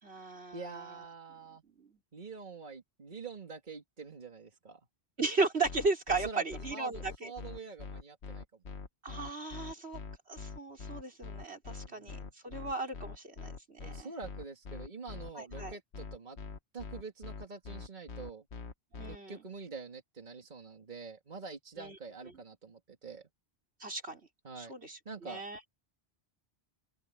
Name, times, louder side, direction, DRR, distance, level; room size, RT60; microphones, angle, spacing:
voice 1, 0.0-0.8 1.8-2.0 5.2-7.3 9.0-10.0 10.3-14.1 15.3-15.7 19.0-19.4 21.8-22.0 23.8-24.2 24.6-25.6, right 3 dB, 80° right, 4.6 m, -36 dB
voice 2, 0.5-1.6 2.1-4.8 6.1-6.4 6.7-8.6 11.8-12.3 13.8-16.4 16.7-18.5 19.1-23.3 24.4-24.7 25.1-25.4, right 4 dB, 45° right, 2.2 m, -46 dB
sound 1, 5.6-19.2, left 5 dB, 85° left, 1.5 m, -43 dB
open air
omnidirectional pair, 1.1 m